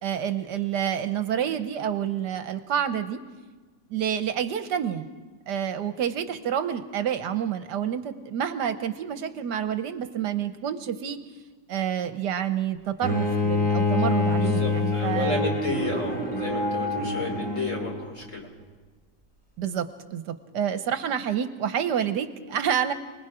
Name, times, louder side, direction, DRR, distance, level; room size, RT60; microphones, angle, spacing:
voice 1, 0.0-3.2 3.9-5.1 5.5-11.2 11.7-15.5 19.6-19.9 20.1-22.9, right 9 dB, 70° right, 10 dB, 1.4 m, -28 dB
Bowed string instrument, 13.0-18.1, left 3 dB, 5° left, 4.1 m, -26 dB
voice 2, 14.4-18.5, left 3 dB, 45° left, 2 dB, 3.4 m, -32 dB
29.0 x 20.0 x 4.9 m, 1.3 s
omnidirectional pair, 1.9 m